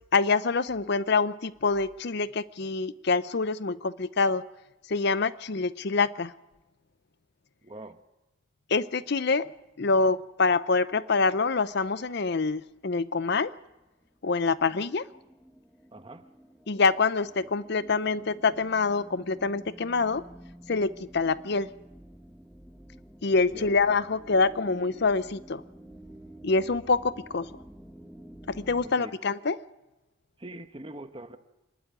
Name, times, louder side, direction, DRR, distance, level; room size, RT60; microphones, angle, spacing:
voice 1, 0.1-4.4 4.9-6.3 8.7-9.5 9.8-13.5 14.2-15.1 16.7-20.3 20.7-21.7 23.2-25.6 26.4-27.5 28.5-29.6, left 4 dB, 50° left, 0.6 m, -26 dB
voice 2, 7.6-8.0 15.9-16.2 23.5-23.7 28.8-29.1 30.4-31.4, right 1 dB, 25° right, 1.0 m, -43 dB
sound 1, 11.4-13.2 13.4-28.9, right 1 dB, 5° left, 1.0 m, -50 dB
26.5 x 12.0 x 9.0 m
head